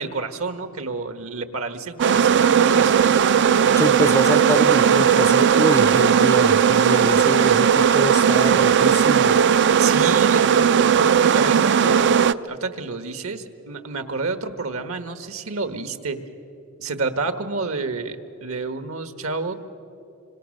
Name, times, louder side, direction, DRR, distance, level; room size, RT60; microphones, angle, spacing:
voice 1, 0.0-3.0 9.8-16.2 16.8-19.5, right 4 dB, 75° right, 9 dB, 1.4 m, -29 dB
sound 1, 2.0-12.3, right 7 dB, 60° right, 0.5 m, -17 dB
voice 2, 3.8-9.3, left 2 dB, 15° left, 13 dB, 0.5 m, -26 dB
26.0 x 25.5 x 6.5 m, 2.7 s
head